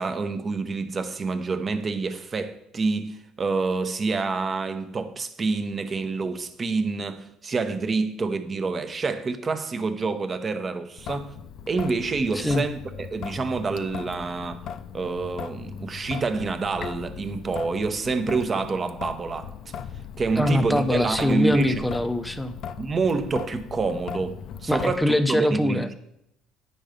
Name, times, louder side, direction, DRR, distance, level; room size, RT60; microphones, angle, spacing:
voice 1, 0.0-11.3 11.7-14.6 14.9-19.5 20.2-21.8 22.8-25.9, right 4 dB, 30° right, 0.8 m, -27 dB
Traffic noise roadway noise / Drip / Trickle dribble, 11.0-25.0, left 8 dB, 55° left, 0.5 m, -38 dB
voice 2, 12.3-12.7 20.4-22.6 24.7-25.9, left 1 dB, 5° left, 0.6 m, -23 dB
9.1 x 5.4 x 5.1 m
cardioid pair, 115°, 0 cm